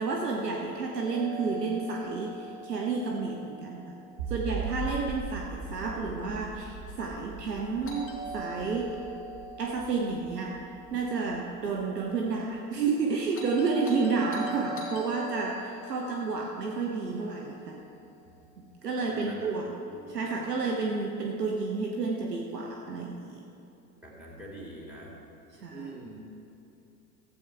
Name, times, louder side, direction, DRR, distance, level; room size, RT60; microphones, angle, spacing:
voice 1, 0.0-4.0 4.3-9.0 9.6-10.6 10.9-17.8 18.8-19.7 20.1-23.4 25.6-25.9, right 4 dB, 80° right, 0 dB, 1.0 m, -31 dB
Doorbell, 1.0-5.0 7.9-12.1 13.3-17.8, right 1 dB, 25° left, 2.5 m, -43 dB
sound 1, 4.2-11.4, right 4 dB, 60° right, 2.2 m, -39 dB
voice 2, 19.1-19.5 19.9-20.2 24.0-25.1 25.7-26.2, right 2 dB, 5° right, -3 dB, 3.0 m, -44 dB
14.5 x 8.2 x 4.7 m, 2.8 s
figure-of-eight pair, 80°, 48 cm